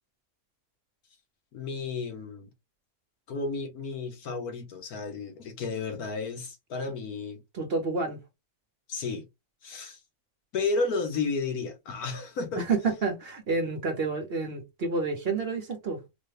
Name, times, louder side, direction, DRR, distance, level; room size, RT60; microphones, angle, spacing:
voice 1, 1.5-2.5 3.3-7.4 8.9-9.3 9.6-10.0 10.5-12.6, left 4 dB, 80° left, 1.4 m, -32 dB
voice 2, 7.5-8.2 12.6-16.0, right 4 dB, 50° right, 0.9 m, -29 dB
4.1 x 2.2 x 3.2 m
omnidirectional pair, 1.6 m